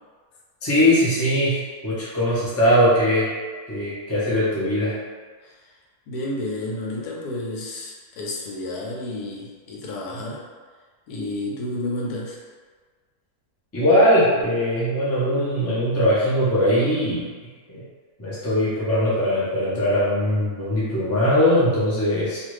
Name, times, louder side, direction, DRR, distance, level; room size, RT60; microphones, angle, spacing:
voice 1, 0.6-3.3 3.7-4.9 13.7-17.3 17.7-17.8 18.2-22.4, equal, 20° left, -9 dB, 0.4 m, -20 dB
voice 2, 6.1-10.4 11.1-12.4, left 1 dB, 80° left, -2 dB, 1.1 m, -31 dB
2.6 x 2.5 x 3.1 m, 1.5 s
omnidirectional pair, 1.6 m